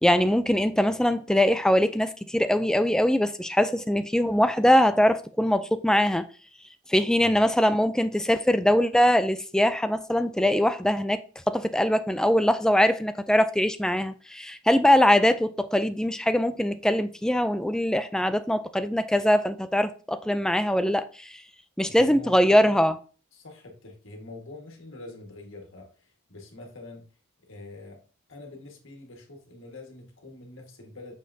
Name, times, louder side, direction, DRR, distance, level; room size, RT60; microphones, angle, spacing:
voice 1, 0.0-6.2 6.9-11.2 11.5-21.4 21.8-23.0, equal, 5° left, 0.3 m, -22 dB
voice 2, 21.9-22.8 23.3-27.1 27.5-28.0 28.3-31.1, left 2 dB, 65° left, 1.7 m, -44 dB
6.4 x 5.7 x 2.7 m
head